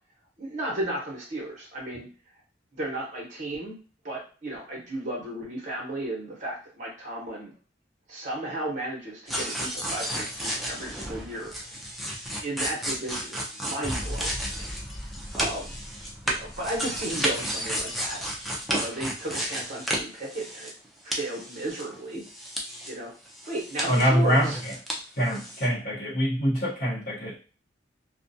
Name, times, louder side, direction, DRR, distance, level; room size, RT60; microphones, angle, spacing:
voice 1, 0.4-2.1 2.7-3.8 4.0-7.5 8.1-11.5 12.4-14.7 15.3-15.8 16.3-18.2 18.7-20.7 21.0-22.2 22.9-23.1 23.5-24.6, right 1 dB, 40° right, -3 dB, 0.9 m, -34 dB
sound 1, 9.3-20.9 21.1-22.9 23.3-25.0 25.3-25.7, equal, ahead, 0.4 m, -32 dB
voice 2, 23.8-24.7 25.2-27.4, equal, 55° left, -7 dB, 0.9 m, -24 dB
2.4 x 2.2 x 2.6 m, 0.37 s
head